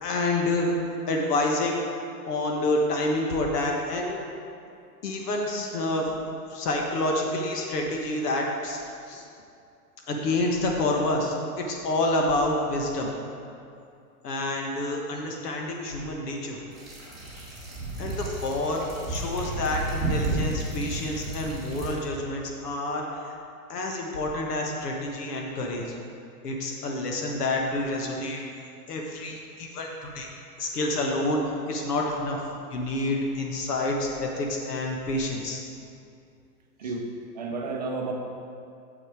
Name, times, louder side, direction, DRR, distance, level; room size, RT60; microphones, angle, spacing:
voice 1, 0.0-1.8 2.3-4.2 5.0-6.1 6.5-8.8 9.1-9.2 10.1-13.1 14.2-16.6 18.0-23.3 23.7-25.9 26.4-28.4 28.9-30.3 30.6-32.4 32.7-35.6, left 2 dB, 80° left, 0 dB, 1.4 m, -28 dB
sound 1, 16.7-21.9, right 2 dB, ahead, 1.2 m, -32 dB
voice 2, 37.3-38.1, right 3 dB, 30° right, 1 dB, 0.5 m, -32 dB
7.3 x 6.2 x 4.7 m, 2.5 s
hypercardioid pair, 175°, 46 cm